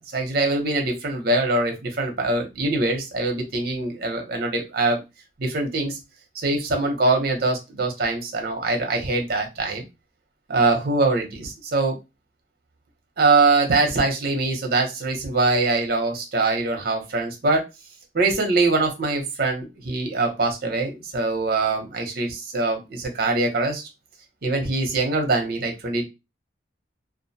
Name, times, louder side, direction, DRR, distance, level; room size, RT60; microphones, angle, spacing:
voice 1, 0.1-5.0 5.4-6.0 6.4-9.9 10.5-12.0 13.2-17.6 18.1-23.9 24.4-26.0, right 3 dB, 55° right, 3 dB, 0.7 m, -23 dB
2.4 x 2.1 x 2.6 m, 0.24 s
head